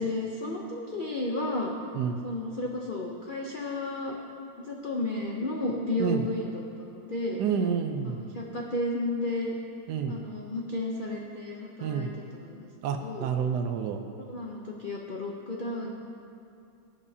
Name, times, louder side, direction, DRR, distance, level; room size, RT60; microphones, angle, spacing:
voice 1, 0.0-1.7 2.2-4.1 4.6-7.4 8.3-9.5 10.1-12.7 13.0-13.3 14.3-15.9, left 2 dB, 80° left, -2 dB, 0.4 m, -32 dB
voice 2, 7.4-8.2 9.9-10.2 11.8-12.1 12.8-14.0, right 7 dB, 70° right, 6 dB, 1.1 m, -29 dB
17.0 x 7.2 x 2.8 m, 2.5 s
omnidirectional pair, 2.0 m